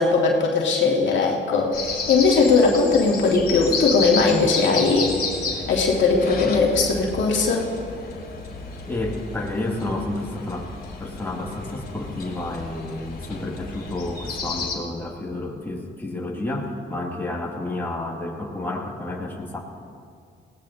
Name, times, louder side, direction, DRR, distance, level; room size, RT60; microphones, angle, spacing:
voice 1, 0.0-5.2 5.7-7.7, left 4 dB, 70° left, -2 dB, 2.2 m, -19 dB
sound 1, 1.7-14.8, left 4 dB, 50° left, 2.8 m, -32 dB
voice 2, 8.9-10.7 11.0-19.6, left 2 dB, 10° left, -2 dB, 2.2 m, -30 dB
20.0 x 17.5 x 2.8 m, 2.2 s
cardioid pair, 90°, 20 cm